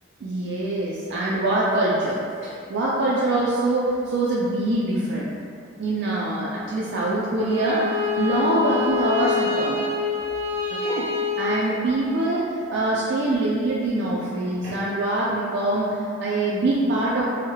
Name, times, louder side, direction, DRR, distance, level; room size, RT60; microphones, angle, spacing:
voice 1, 0.2-5.4 5.8-9.9 10.7-11.1 11.4-17.2, right 2 dB, 60° right, -6 dB, 0.3 m, -24 dB
Bowed string instrument, 7.4-12.4, left 5 dB, 5° right, 1.1 m, -27 dB
3.0 x 2.0 x 2.2 m, 2.4 s
head